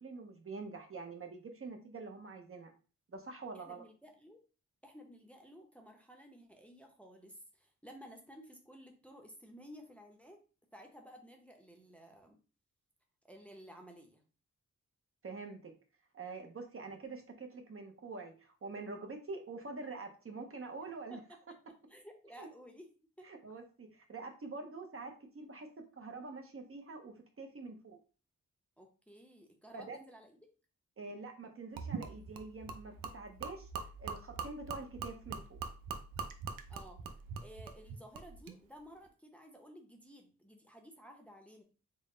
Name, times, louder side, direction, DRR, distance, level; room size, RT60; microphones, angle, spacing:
voice 1, 0.0-2.7 3.1-3.9 15.2-15.7 16.1-21.2 22.4-22.5 23.2-28.0 29.7-30.0 31.0-33.7 34.0-35.6, right 3 dB, 40° right, 5 dB, 0.6 m, -46 dB
voice 2, 3.5-4.4 4.8-10.4 10.7-12.4 13.2-14.2 21.1-21.4 21.9-22.9 23.2-23.3 28.8-30.4 36.7-37.0 37.4-41.6, equal, 5° left, 2 dB, 0.6 m, -54 dB
Gurgling / Liquid, 31.8-38.6, right 5 dB, 90° right, 0.5 m, -43 dB
3.8 x 2.1 x 3.7 m, 0.36 s
wide cardioid pair, 90°, 33 cm